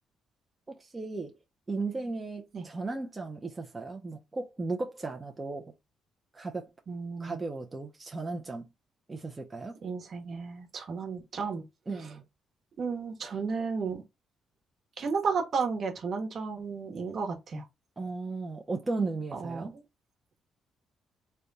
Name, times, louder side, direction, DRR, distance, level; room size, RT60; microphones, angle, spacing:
voice 1, 0.7-1.4 1.7-5.7 6.3-6.7 7.2-8.7 9.1-9.8 11.9-12.2 18.0-19.7, right 3 dB, 20° right, 0.7 m, -35 dB
voice 2, 6.9-7.4 9.8-11.6 12.8-14.0 15.0-17.6 19.3-19.7, right 5 dB, 55° right, 1.2 m, -33 dB
3.4 x 2.3 x 4.0 m
cardioid pair, 90°, 0 cm